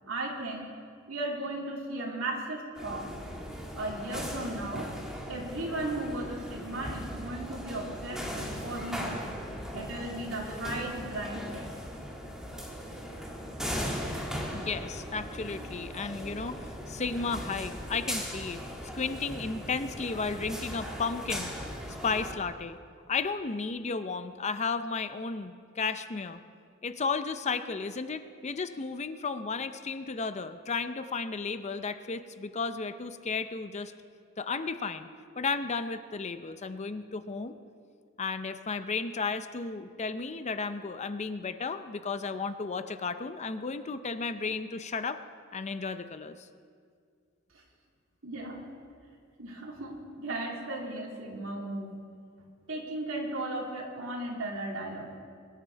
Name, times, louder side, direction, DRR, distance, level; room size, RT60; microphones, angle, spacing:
voice 1, 0.1-0.7 1.1-3.1 3.8-4.9 5.3-9.1 9.7-11.7 47.5-47.6 48.2-48.6 49.4-52.0 52.7-55.1, right 2 dB, 70° right, -1 dB, 2.8 m, -36 dB
sound 1, 2.8-22.3, equal, 5° right, 1.9 m, -38 dB
voice 2, 14.5-18.6 18.9-21.5 22.0-22.8 23.1-26.4 26.8-33.9 34.4-35.1 35.4-37.5 38.2-45.2 45.5-46.5, left 4 dB, 35° left, 11 dB, 0.5 m, -33 dB
22.5 x 11.0 x 4.6 m, 2.2 s
head